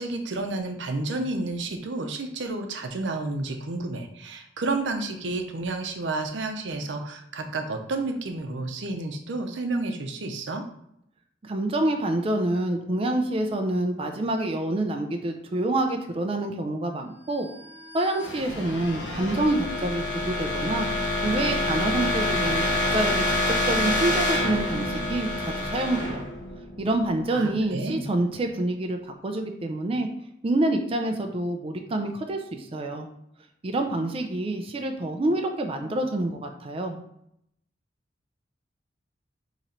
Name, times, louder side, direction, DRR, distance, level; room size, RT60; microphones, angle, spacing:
voice 1, 0.0-10.6 27.3-28.0, right 2 dB, 90° right, 5 dB, 0.6 m, -31 dB
voice 2, 11.4-17.5 17.9-20.9 21.2-22.6 22.9-26.2 26.8-30.1 30.4-33.1 33.6-37.0, right 1 dB, 30° right, 4 dB, 0.4 m, -27 dB
sound 1, 17.5-27.3, left 1 dB, 75° left, 0.9 m, -27 dB
3.8 x 3.0 x 4.2 m, 0.75 s
head